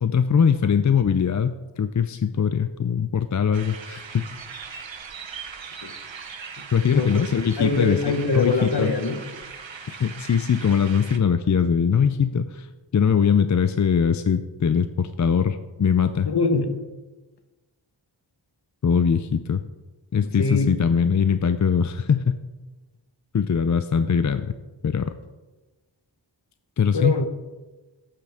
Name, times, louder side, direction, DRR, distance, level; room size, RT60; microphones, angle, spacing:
voice 1, 0.0-4.2 6.7-8.0 8.3-8.9 9.9-12.7 12.9-16.3 18.8-19.6 20.1-22.4 23.3-24.5 24.8-25.1 26.8-27.2, left 7 dB, 40° left, 10 dB, 0.5 m, -21 dB
sound 1, 3.5-11.2, right 6 dB, 75° right, 0.9 m, -40 dB
voice 2, 6.8-7.2 7.6-9.2 16.2-16.7 20.4-20.7 26.9-27.3, left 3 dB, 55° left, 7 dB, 1.1 m, -23 dB
12.0 x 8.7 x 3.5 m, 1.2 s
wide cardioid pair, 65°, 46 cm